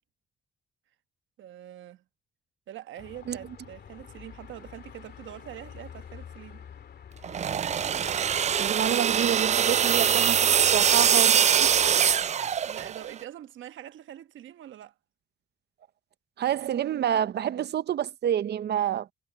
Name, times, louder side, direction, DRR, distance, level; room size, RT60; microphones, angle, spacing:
voice 1, 1.4-2.0 2.7-6.6 11.5-11.8 12.1-14.9, right 12 dB, 75° right, 1.2 m, -44 dB
Car passing by / Traffic noise roadway noise / Engine, 3.0-11.1, left 8 dB, 55° left, 2.4 m, -47 dB
sound 1, 7.2-13.1, right 8 dB, 35° right, 0.4 m, -23 dB
voice 2, 8.6-11.5 16.4-19.1, right 10 dB, 55° right, 0.8 m, -28 dB
cardioid pair, 90°, 20 cm